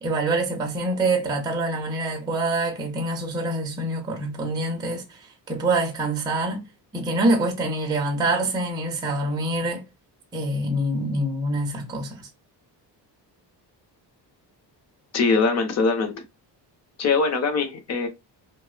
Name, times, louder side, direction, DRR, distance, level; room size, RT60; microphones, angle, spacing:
voice 1, 0.0-6.7 6.9-9.9 10.3-12.3, right 2 dB, 10° right, 0.4 m, -25 dB
voice 2, 15.1-16.2 17.0-18.1, left 4 dB, 40° left, 0.6 m, -22 dB
2.8 x 2.0 x 2.3 m
cardioid pair, 160°, 43 cm